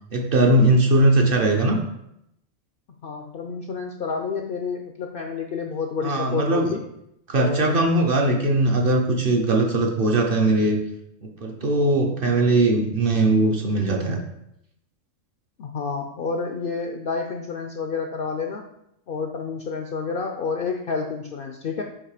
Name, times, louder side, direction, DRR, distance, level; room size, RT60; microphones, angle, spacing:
voice 1, 0.1-1.8 6.0-6.7 7.3-10.8 11.2-14.2, right 2 dB, 50° right, 0 dB, 0.8 m, -20 dB
voice 2, 3.0-6.8 7.4-7.7 15.6-18.7 19.1-21.8, left 5 dB, 65° left, 3 dB, 0.5 m, -29 dB
7.2 x 2.9 x 4.9 m, 0.80 s
omnidirectional pair, 1.4 m